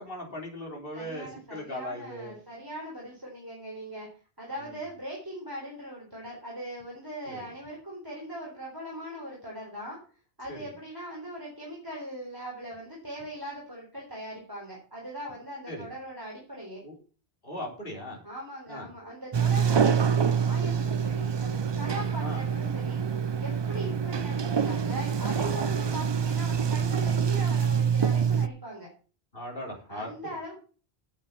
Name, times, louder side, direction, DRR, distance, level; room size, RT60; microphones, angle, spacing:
voice 1, 0.0-2.4 4.6-4.7 7.3-7.5 10.5-10.7 15.7-15.9 16.8-16.9 17.4-18.2 18.7-18.9 22.2-22.4 29.3-30.1, left 1 dB, 60° left, 0 dB, 4.0 m, -38 dB
voice 2, 0.9-4.1 4.4-10.0 10.4-16.8 18.2-23.0 23.4-28.9 29.9-30.6, right 1 dB, 20° right, -3 dB, 3.9 m, -40 dB
Sliding door, 19.3-28.5, right 7 dB, 40° right, 0.4 m, -26 dB
10.0 x 8.3 x 6.0 m, 0.38 s
omnidirectional pair, 1.0 m